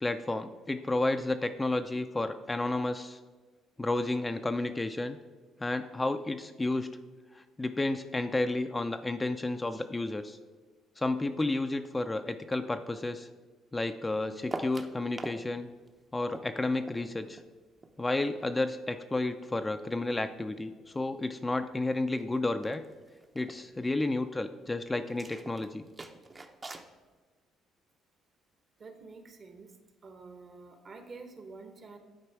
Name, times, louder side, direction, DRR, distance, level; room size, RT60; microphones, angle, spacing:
voice 1, 0.0-3.2 3.8-5.2 5.6-6.9 7.3-10.4 11.0-13.3 13.7-15.7 16.1-17.4 18.0-22.8 23.3-25.8, left 2 dB, 20° left, 8 dB, 0.4 m, -31 dB
sound 1, 14.5-15.4 15.7-18.5 18.8-20.6 20.9-21.4 21.7-21.8 22.0-22.3 22.6-23.6 25.1-26.9, right 2 dB, 30° right, 0.7 m, -44 dB
voice 2, 28.8-29.8 30.0-32.0, right 4 dB, 45° right, 7 dB, 1.1 m, -48 dB
10.0 x 4.1 x 4.7 m, 1.3 s
supercardioid pair, 75°, 0 cm